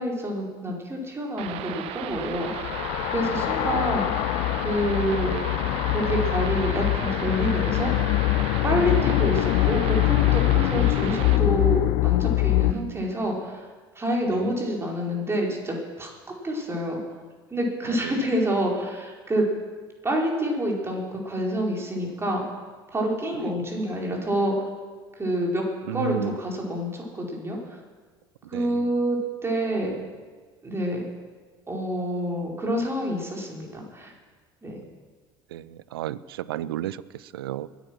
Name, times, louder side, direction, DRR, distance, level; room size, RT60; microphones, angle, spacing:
voice 1, 0.0-4.3 4.6-5.4 5.9-7.9 8.6-13.7 13.9-17.0 17.5-19.4 20.0-22.4 22.9-24.7 25.2-25.6 25.9-27.8 28.5-29.9 30.6-31.0 31.7-34.1 34.6-34.8, equal, 20° right, -1 dB, 4.8 m, -27 dB
sound 1, 1.4-11.4, right 10 dB, 55° right, 1.1 m, -35 dB
sound 2, 2.2-12.7, left 22 dB, 55° left, 0.4 m, -23 dB
voice 2, 12.7-13.0 14.3-14.5 25.9-26.4 28.5-28.9 35.5-37.7, right 13 dB, 75° right, 20 dB, 0.5 m, -33 dB
22.0 x 9.4 x 6.3 m, 1.4 s
figure-of-eight pair, 60°, 12 cm